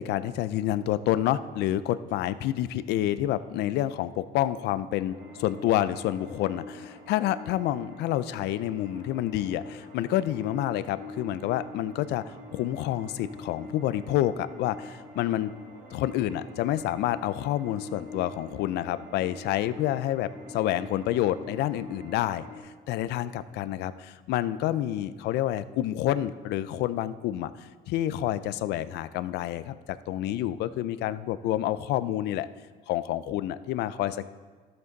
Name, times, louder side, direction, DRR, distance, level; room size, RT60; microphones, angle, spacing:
voice 1, 0.0-15.5 15.9-22.4 22.9-32.5 32.9-34.3, left 13 dB, 80° left, 14 dB, 0.4 m, -28 dB
sound 1, 5.1-22.6, left 2 dB, 60° right, 3.4 m, -44 dB
12.5 x 7.7 x 4.0 m, 1.4 s
cardioid pair, 110°, 17 cm